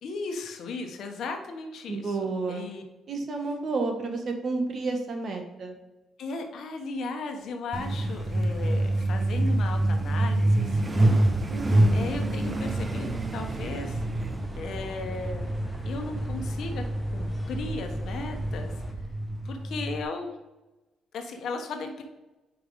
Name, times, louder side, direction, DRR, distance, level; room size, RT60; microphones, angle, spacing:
voice 1, 0.0-2.8 6.2-11.2 11.9-14.0 14.6-15.5 15.8-16.8 17.1-18.7 19.4-20.3 21.1-22.0, left 3 dB, 70° left, 5 dB, 1.0 m, -36 dB
voice 2, 1.9-2.7 3.1-5.8 11.5-12.1, right 3 dB, 55° right, 4 dB, 1.4 m, -31 dB
Truck, 7.7-20.0, right 1 dB, 25° right, 0.7 m, -27 dB
sound 1, 10.0-10.3 10.8-10.9 11.2-18.9, right 1 dB, 10° left, 1.2 m, -40 dB
5.0 x 5.0 x 4.9 m, 1.1 s
supercardioid pair, 65°, 0 cm